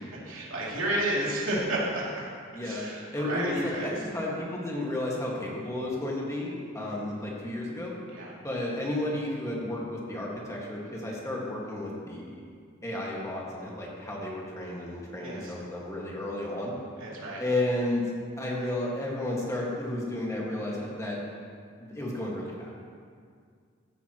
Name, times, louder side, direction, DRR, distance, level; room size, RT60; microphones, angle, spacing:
voice 1, 0.1-2.2 2.6-4.0 8.1-8.3 15.2-15.5 17.0-17.4, right 1 dB, 80° right, -6 dB, 2.8 m, -31 dB
voice 2, 2.5-2.8 3.1-7.9 8.4-12.4 12.8-16.7 17.4-18.1 18.4-21.2 21.8-22.7, left 1 dB, 15° left, -4 dB, 1.8 m, -32 dB
15.0 x 9.9 x 3.1 m, 2.1 s
head